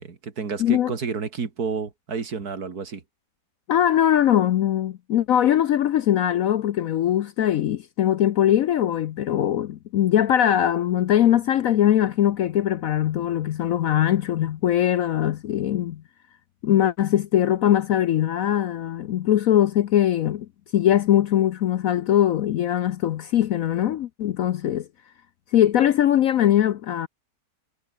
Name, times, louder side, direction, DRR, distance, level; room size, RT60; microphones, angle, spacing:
voice 1, 0.0-3.0, right 5 dB, 60° right, 2.7 m, -30 dB
voice 2, 0.6-0.9 3.7-16.0 16.6-20.5 20.7-24.9 25.5-27.1, left 11 dB, 65° left, 0.9 m, -21 dB
omnidirectional pair, 1.8 m